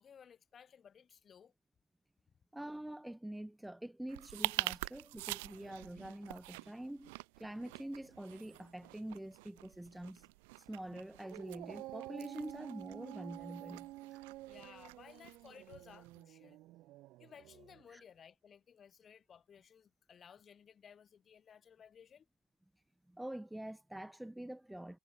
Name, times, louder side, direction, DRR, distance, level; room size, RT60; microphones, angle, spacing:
voice 1, 0.0-1.5 14.5-16.6 17.2-22.3, left 7 dB, 35° left, 1.8 m, -58 dB
voice 2, 2.5-10.3 10.7-13.9 17.9-18.0 23.1-25.0, right 1 dB, 5° right, 0.9 m, -46 dB
sound 1, 4.1-16.2, right 26 dB, 85° right, 2.1 m, -46 dB
Dog, 11.2-17.8, right 17 dB, 60° right, 1.2 m, -50 dB
supercardioid pair, 115°, 0 cm